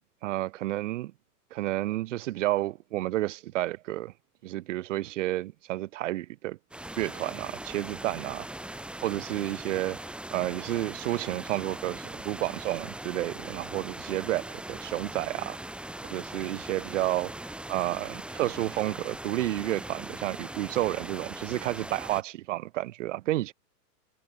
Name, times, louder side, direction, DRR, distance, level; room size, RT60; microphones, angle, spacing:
voice 1, 0.2-1.1 1.5-4.1 4.4-6.6 7.0-8.4 9.0-10.0 10.3-15.6 16.0-17.4 17.7-23.5, right 16 dB, 50° right, 4.6 m, -31 dB
sound 1, 6.7-22.2, right 1 dB, ahead, 5.4 m, -40 dB
hypercardioid pair, 160°, 47 cm